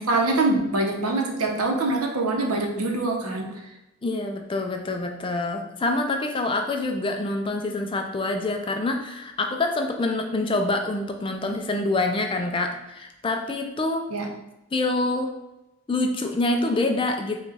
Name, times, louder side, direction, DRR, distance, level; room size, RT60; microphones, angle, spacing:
voice 1, 0.0-3.7 14.1-14.3, right 2 dB, 85° right, 2 dB, 0.8 m, -24 dB
voice 2, 4.0-14.1 14.7-15.3 15.9-17.4, left 2 dB, 25° left, 4 dB, 0.3 m, -26 dB
5.0 x 2.3 x 4.0 m, 0.92 s
head